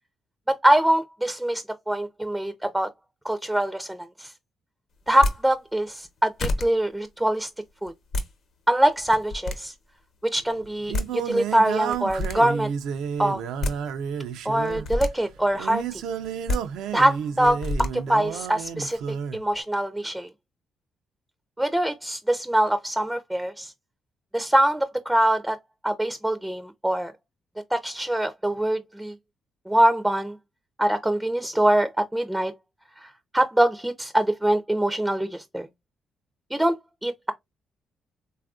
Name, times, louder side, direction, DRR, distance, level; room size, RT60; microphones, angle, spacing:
voice 1, 0.5-2.9 3.2-4.3 5.1-7.5 7.8-7.9 8.7-9.7 10.3-12.7 13.2-13.4 14.5-16.0 16.9-17.6 17.9-19.0 19.3-20.3 21.6-23.7 24.3-25.6 25.8-27.1 27.7-29.1 29.7-30.4 30.8-32.5 33.0-35.7 36.5-36.7 37.0-37.3, right 1 dB, 5° right, 0.4 m, -23 dB
sound 1, 5.1-5.4 6.0-6.1 6.4-6.7 7.9-8.3 9.0-9.6 10.6-10.7 10.9-11.1 11.9-12.4 13.3-13.8 14.6-15.1 16.2-16.6 17.4-17.9, left 2 dB, 65° left, 0.8 m, -27 dB
Singing, 10.4-19.4, right 7 dB, 85° right, 0.4 m, -31 dB
3.4 x 2.3 x 2.3 m
cardioid pair, 90°, 0 cm